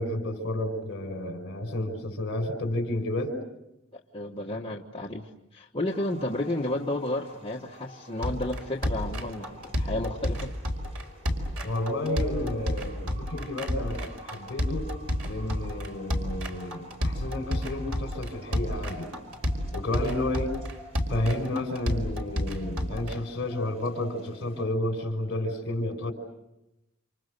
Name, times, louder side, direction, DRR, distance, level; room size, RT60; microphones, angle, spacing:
voice 1, 0.0-3.4 11.6-14.9 15.2-19.1 19.7-20.5 21.1-26.1, left 1 dB, 55° left, 6 dB, 5.8 m, -31 dB
voice 2, 4.1-10.5 20.0-20.2, left 1 dB, 25° left, -1 dB, 1.4 m, -32 dB
sound 1, 5.8-24.6, left 1 dB, 25° right, 5.3 m, -51 dB
sound 2, 8.2-23.1, equal, 85° right, 4.7 m, -30 dB
29.5 x 28.0 x 6.7 m, 0.92 s
head